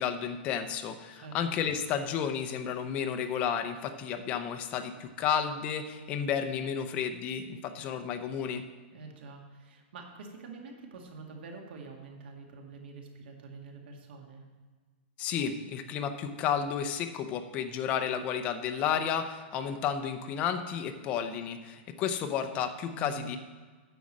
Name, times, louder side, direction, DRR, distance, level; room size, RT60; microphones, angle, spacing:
voice 1, 0.0-8.6 15.2-23.4, left 8 dB, 20° left, 7 dB, 0.6 m, -32 dB
voice 2, 8.9-14.4 22.9-23.4, right 4 dB, 65° right, 2 dB, 2.0 m, -46 dB
9.3 x 6.3 x 7.3 m, 1.4 s
supercardioid pair, 175°, 6 cm